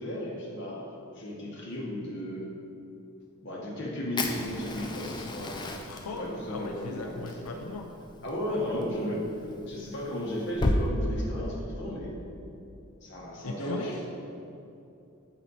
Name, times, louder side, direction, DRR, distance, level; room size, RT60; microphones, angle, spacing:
voice 1, 0.0-2.4 3.4-7.7 8.2-9.3 9.7-12.1 13.0-14.0, equal, 55° left, -4 dB, 1.3 m, -35 dB
Fire, 4.2-10.8, left 2 dB, 20° left, 0.3 m, -35 dB
voice 2, 5.9-7.9 13.4-14.1, left 3 dB, 90° left, 2 dB, 0.4 m, -39 dB
7.9 x 4.3 x 4.0 m, 2.7 s
head